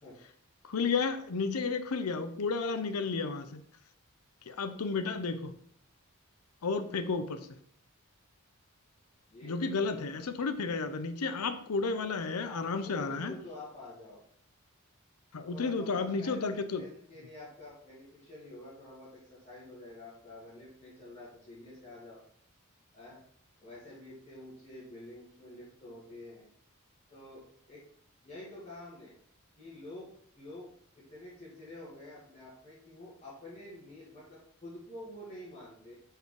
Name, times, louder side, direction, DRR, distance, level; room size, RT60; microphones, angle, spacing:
voice 1, 0.6-3.6 4.5-5.5 6.6-7.4 9.4-13.3 15.3-16.9, left 4 dB, 90° left, 10 dB, 0.7 m, -32 dB
voice 2, 4.7-5.1 9.3-10.2 12.4-14.2 15.3-22.2 22.9-23.2 23.6-26.5 27.1-27.8 28.2-29.1 29.6-30.7 31.0-35.9, left 1 dB, 30° left, -9 dB, 1.9 m, -48 dB
5.2 x 4.6 x 4.7 m, 0.62 s
head